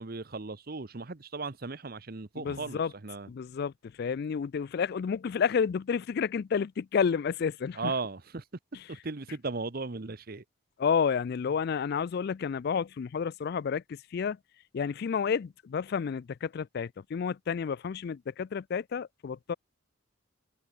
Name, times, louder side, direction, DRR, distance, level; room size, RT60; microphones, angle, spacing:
voice 1, 0.0-3.3 7.7-8.4 8.9-10.4, right 3 dB, 45° right, 0.9 m, -36 dB
voice 2, 2.4-2.9 3.3-7.9 8.7-8.8 10.8-14.4 14.7-19.5, left 6 dB, 50° left, 0.3 m, -30 dB
head